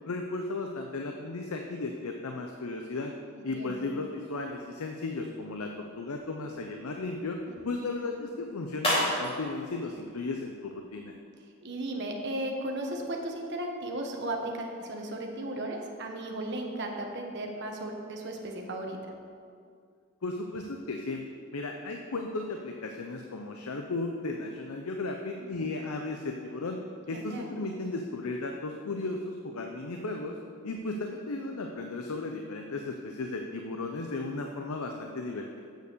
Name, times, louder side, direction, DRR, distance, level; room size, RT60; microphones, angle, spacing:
voice 1, 0.1-3.1 3.4-7.4 7.6-11.1 20.2-21.2 21.5-26.8 27.1-30.4 30.6-35.6, left 3 dB, 90° left, 3 dB, 0.7 m, -35 dB
voice 2, 3.3-3.8 11.6-19.0 25.4-25.5 27.1-27.5 30.6-30.7, right 1 dB, 50° right, 1 dB, 1.2 m, -35 dB
sound 1, 5.4-11.2, equal, 25° left, 2.5 m, -36 dB
8.0 x 6.8 x 6.7 m, 2.3 s
head